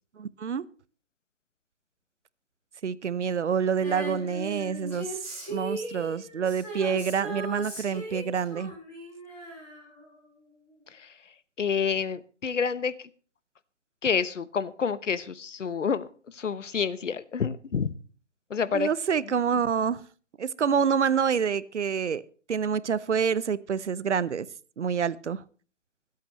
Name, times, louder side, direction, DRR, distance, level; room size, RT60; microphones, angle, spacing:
voice 1, 0.2-0.7 2.8-8.7 18.7-20.0 20.4-22.2 22.5-24.5 24.8-25.4, right 7 dB, 65° right, 19 dB, 0.8 m, -27 dB
Female singing, 3.8-10.4 10.7-10.8, right 1 dB, 5° left, 6.1 m, -38 dB
voice 2, 10.9-13.1 14.0-17.9 18.5-18.9 19.2-19.3, left 6 dB, 75° left, 16 dB, 1.0 m, -29 dB
25.0 x 8.6 x 3.1 m, 0.39 s
hypercardioid pair, 160°, 37 cm